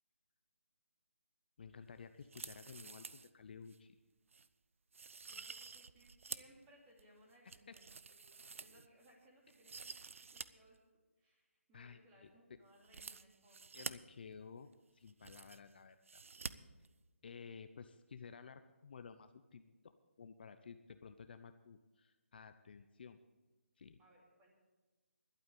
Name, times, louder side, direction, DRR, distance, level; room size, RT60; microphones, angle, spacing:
voice 1, 1.6-4.0 7.7-7.8 11.7-12.3 13.7-16.2 17.2-23.2 23.8-24.0, left 6 dB, 45° left, 10 dB, 0.6 m, -54 dB
sound 1, 2.2-3.3 3.7-3.8 4.3-4.5 4.9-6.6 7.0-9.1 9.5-10.5 10.7-10.8 12.8-13.9 14.7-14.8 15.0-15.7 16.0-16.5 16.8-16.9, right 5 dB, 65° right, 0.6 m, -49 dB
voice 2, 5.3-10.8 11.2-13.6 24.0-24.6, equal, 15° right, -2 dB, 2.8 m, -66 dB
12.0 x 8.9 x 8.1 m, 1.2 s
hypercardioid pair, 165°, 8 cm